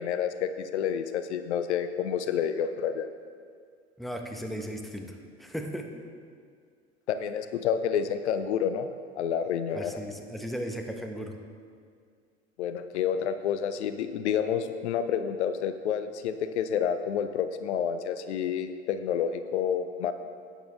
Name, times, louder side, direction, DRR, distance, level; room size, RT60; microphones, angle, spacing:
voice 1, 0.0-3.1 7.1-8.9 9.2-10.0 12.6-20.1, left 8 dB, 80° left, 10 dB, 0.6 m, -29 dB
voice 2, 4.0-5.9 9.7-11.3, equal, ahead, 3 dB, 1.2 m, -36 dB
12.0 x 9.1 x 3.6 m, 2.1 s
hypercardioid pair, 65°, 34 cm